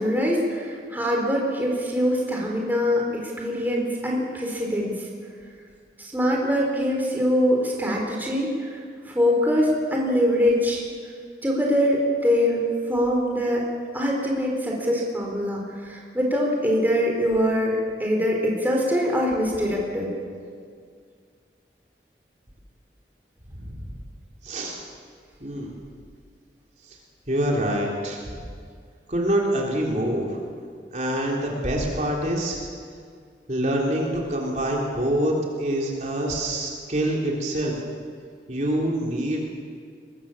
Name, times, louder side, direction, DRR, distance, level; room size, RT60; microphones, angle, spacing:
voice 1, 0.0-5.1 6.0-8.8 9.1-10.8 11.4-13.6 13.9-20.1, equal, 10° right, -1 dB, 4.0 m, -23 dB
voice 2, 24.4-24.8 25.4-25.7 26.9-27.0 27.3-28.4 29.1-30.4 30.9-32.6 33.5-37.8 38.5-39.4, right 1 dB, 40° right, -2 dB, 3.7 m, -25 dB
24.0 x 21.5 x 7.4 m, 2.1 s
head